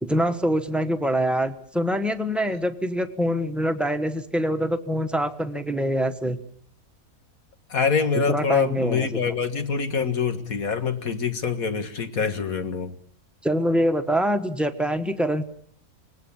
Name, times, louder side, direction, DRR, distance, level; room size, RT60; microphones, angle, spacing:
voice 1, 0.0-6.4 8.1-9.3 13.4-15.4, equal, ahead, 7 dB, 1.2 m, -24 dB
voice 2, 7.7-12.9, left 5 dB, 65° left, 8 dB, 2.1 m, -25 dB
25.0 x 19.5 x 7.2 m, 0.63 s
omnidirectional pair, 1.6 m